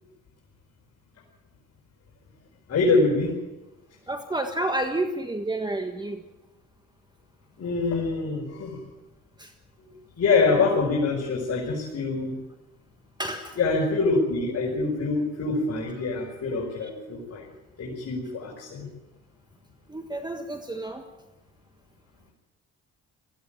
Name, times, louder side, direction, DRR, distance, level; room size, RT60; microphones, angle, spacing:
voice 1, 2.7-3.3 7.6-8.8 10.2-12.3 13.6-17.4 17.8-18.9, left 3 dB, 55° left, -4 dB, 5.7 m, -25 dB
voice 2, 4.1-6.3 9.4-9.5 13.2-13.6 16.8-16.9 19.9-21.0, right 2 dB, 15° right, 6 dB, 1.5 m, -30 dB
19.5 x 16.0 x 9.2 m, 1.1 s
cardioid pair, 90°, 30 cm